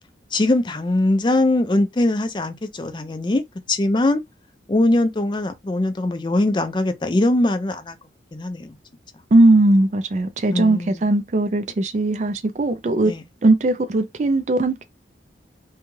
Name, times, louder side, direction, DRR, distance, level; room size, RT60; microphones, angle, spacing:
voice 1, 0.3-4.2 4.7-8.0 8.3-8.8 10.5-10.9 13.1-13.2, left 2 dB, 25° left, 0.4 m, -21 dB
voice 2, 9.3-13.1 13.4-14.8, right 2 dB, 40° right, 0.4 m, -18 dB
2.7 x 2.3 x 3.0 m
head